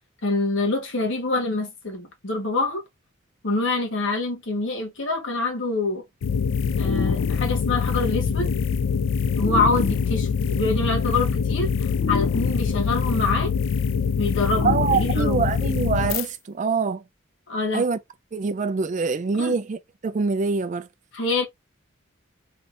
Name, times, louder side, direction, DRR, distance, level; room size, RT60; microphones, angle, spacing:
voice 1, 0.2-2.8 3.4-6.0 6.8-8.5 9.3-11.7 12.1-13.5 14.2-15.4 17.5-17.8 19.4-19.6 21.1-21.4, left 3 dB, 65° left, 1.2 m, -25 dB
sound 1, 6.2-16.3, left 6 dB, 85° left, 0.4 m, -24 dB
voice 2, 14.6-17.0 17.7-18.0 18.3-19.8 20.0-20.9, right 4 dB, 35° right, 0.3 m, -24 dB
3.3 x 2.8 x 2.6 m
head